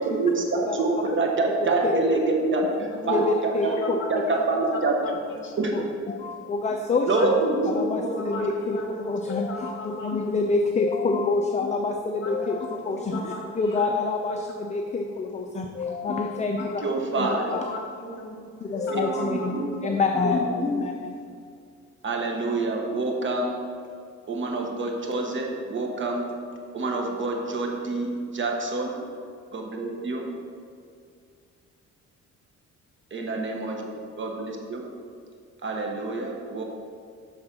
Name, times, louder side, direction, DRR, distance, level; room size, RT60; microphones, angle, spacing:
voice 1, 0.0-4.9 5.6-5.7 7.1-7.9 16.8-17.4 18.9-19.9 20.2-20.5 22.0-23.6 24.3-26.3 26.7-29.0 29.5-30.3 33.1-33.8 34.2-34.9 35.6-36.6, right 2 dB, 40° right, 1 dB, 1.1 m, -26 dB
voice 2, 1.8-2.2 3.1-4.0 5.6-7.3 7.6-8.8 9.1-16.8 17.1-17.7 18.6-21.4, left 3 dB, 25° left, 4 dB, 0.4 m, -27 dB
voice 3, 2.9-4.6 5.0-5.9 7.1-7.4 7.7-10.2 10.5-10.6 12.2-14.7 16.6-19.5 19.9-20.0, equal, 40° left, 0 dB, 1.6 m, -37 dB
7.1 x 3.9 x 5.2 m, 2.2 s
cardioid pair, 90°, 30 cm